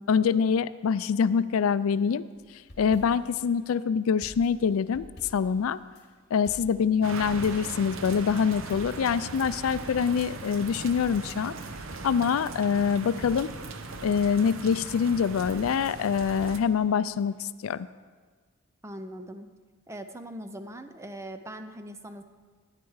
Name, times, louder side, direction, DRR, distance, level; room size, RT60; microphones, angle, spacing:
voice 1, 0.1-2.2 2.8-5.1 5.3-5.8 6.3-11.5 12.0-13.5 14.0-17.9, left 6 dB, 80° left, 15 dB, 0.4 m, -25 dB
sound 1, 2.4-3.4 4.2-6.0 6.4-7.9 8.2-8.3 8.7-10.5 10.9-12.4 12.7-12.8 13.2-15.0 15.4-16.9 17.2-17.3, left 1 dB, 50° left, 1.8 m, -48 dB
sound 2, 7.0-16.6, right 4 dB, 70° right, 0.8 m, -39 dB
voice 2, 18.8-19.5 19.9-22.2, right 1 dB, 15° right, 8 dB, 0.5 m, -41 dB
13.0 x 9.8 x 4.8 m, 1.5 s
head